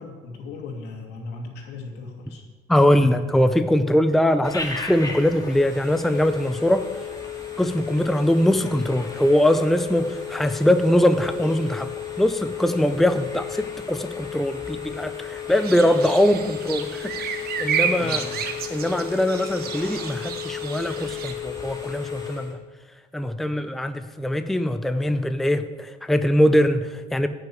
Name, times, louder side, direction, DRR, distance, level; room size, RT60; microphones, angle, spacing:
voice 1, 0.0-2.4 18.0-18.2, left 3 dB, 80° left, 2 dB, 2.5 m, -37 dB
voice 2, 2.7-6.9 7.6-11.9 12.2-17.3 17.6-18.2 18.7-22.6 23.1-27.3, left 1 dB, ahead, 9 dB, 0.6 m, -22 dB
Telephone, 4.4-22.5, left 8 dB, 20° left, 2.8 m, -34 dB
sound 1, 15.5-21.3, right 7 dB, 65° right, 1.2 m, -31 dB
10.0 x 6.4 x 8.9 m, 1.3 s
cardioid pair, 110°, 17 cm